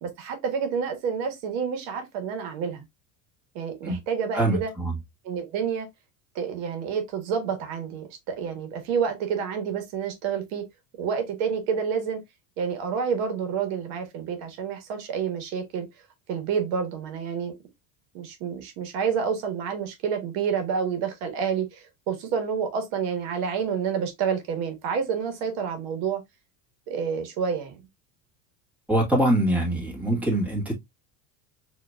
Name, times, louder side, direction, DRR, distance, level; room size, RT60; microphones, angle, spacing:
voice 1, 0.0-2.8 3.5-4.7 5.2-5.9 6.3-10.7 11.0-12.2 12.6-15.9 16.3-17.5 18.1-26.2 26.9-27.8, right 6 dB, 65° right, 1.5 m, -29 dB
voice 2, 4.3-4.9 28.9-30.7, right 1 dB, 5° right, 1.8 m, -23 dB
4.9 x 3.0 x 2.3 m
supercardioid pair, 110°, 47 cm